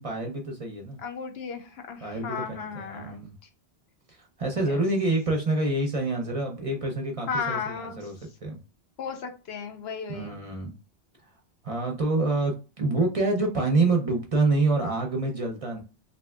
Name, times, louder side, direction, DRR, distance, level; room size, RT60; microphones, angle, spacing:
voice 1, 0.0-1.0 2.0-3.3 4.1-8.1 8.4-8.6 10.1-10.7 11.6-15.8, right 2 dB, 40° right, 2 dB, 0.6 m, -27 dB
voice 2, 1.0-3.2 7.3-8.0 9.0-10.4, left 6 dB, 80° left, 5 dB, 0.9 m, -34 dB
3.3 x 2.7 x 2.2 m, 0.32 s
omnidirectional pair, 1.1 m